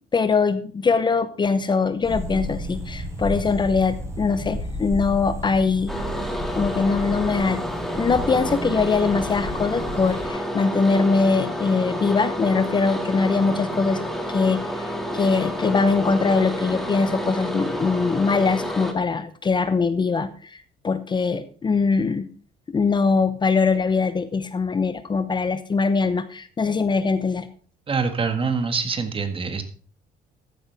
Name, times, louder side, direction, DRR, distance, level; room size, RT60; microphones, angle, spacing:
voice 1, 0.1-5.9 6.6-7.6 7.9-14.0 14.3-14.9 15.1-22.3 22.7-27.5, left 4 dB, 25° left, 12 dB, 0.8 m, -22 dB
sound 1, 2.0-10.3, equal, 15° right, 4.0 m, -32 dB
sound 2, 5.9-18.9, equal, ahead, 2.2 m, -29 dB
voice 2, 27.9-29.6, right 5 dB, 30° right, 8 dB, 1.8 m, -25 dB
14.0 x 10.5 x 3.5 m, 0.43 s
cardioid pair, 110°, 17 cm